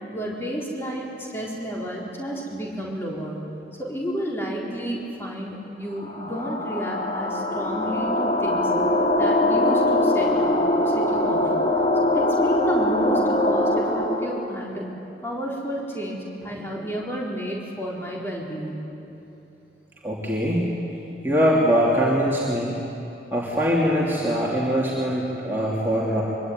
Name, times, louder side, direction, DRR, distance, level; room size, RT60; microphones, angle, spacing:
voice 1, 0.1-3.4 3.8-8.7 9.1-11.5 12.0-14.9 15.2-18.8, equal, 15° left, -3 dB, 4.2 m, -31 dB
sound 1, 6.0-14.4, left 1 dB, 30° left, 2.5 m, -22 dB
voice 2, 20.0-20.7 21.2-22.8 23.3-26.2, equal, 10° right, -6 dB, 3.2 m, -22 dB
25.0 x 23.5 x 9.5 m, 2.9 s
head